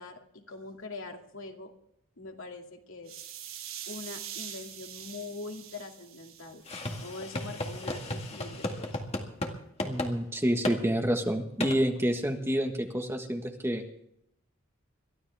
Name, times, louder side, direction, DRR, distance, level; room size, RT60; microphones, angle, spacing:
voice 1, 0.0-1.7 2.2-3.1 3.9-6.6 7.0-9.0, left 3 dB, 70° left, 2 dB, 2.4 m, -43 dB
sound 1, 3.0-7.1, right 10 dB, 70° right, 6.9 m, -44 dB
sound 2, 6.7-9.5 9.8-10.1 10.6-10.8 11.6-11.8, left 1 dB, 30° left, 2.0 m, -34 dB
voice 2, 9.8-13.8, equal, 10° right, 3 dB, 1.5 m, -28 dB
23.0 x 14.0 x 3.5 m, 0.74 s
head